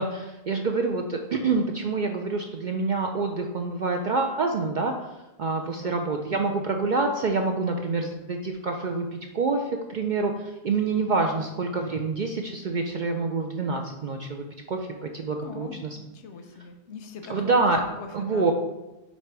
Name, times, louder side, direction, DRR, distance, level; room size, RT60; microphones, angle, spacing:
voice 1, 0.0-4.9 5.4-15.7 17.3-17.8 18.1-18.5, right 3 dB, 55° right, 3 dB, 0.6 m, -27 dB
voice 2, 5.6-6.0 11.0-11.4 15.4-17.7 18.0-18.5, left 5 dB, 90° left, 6 dB, 1.0 m, -41 dB
8.1 x 2.8 x 4.6 m, 1.0 s
omnidirectional pair, 1.1 m